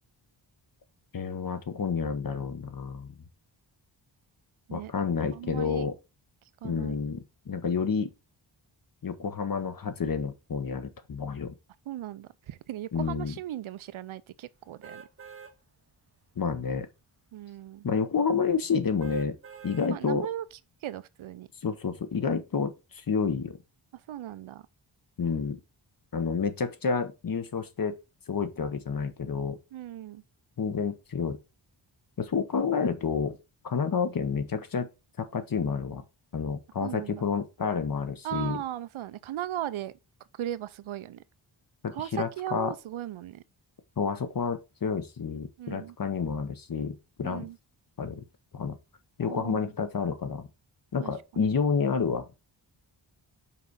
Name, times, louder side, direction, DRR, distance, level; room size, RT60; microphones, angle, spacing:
voice 1, 1.1-3.1 4.7-5.9 6.6-8.1 9.0-11.5 12.9-13.4 16.4-16.9 17.8-19.4 19.6-20.3 21.6-23.6 25.2-25.6 26.1-28.0 28.3-29.6 30.6-31.4 32.2-33.4 33.6-34.9 35.2-36.0 36.3-38.6 41.8-42.7 44.0-47.5 48.0-48.2 48.5-48.8 49.2-50.5 50.9-52.3, left 5 dB, 45° left, 0.9 m, -29 dB
voice 2, 5.3-5.9 6.6-7.0 11.9-15.0 17.3-17.9 19.9-20.5 20.8-21.5 23.9-24.7 29.7-30.2 36.8-37.3 38.2-39.9 40.3-41.2 41.9-43.4 45.6-46.0 47.2-47.6 49.2-49.7 51.0-51.1, right 12 dB, 85° right, 0.6 m, -37 dB
sound 1, 14.8-15.5 16.1-16.2 19.0-19.9 20.5-20.6, right 6 dB, 30° right, 0.7 m, -46 dB
5.9 x 4.6 x 4.0 m
wide cardioid pair, 135°, 47 cm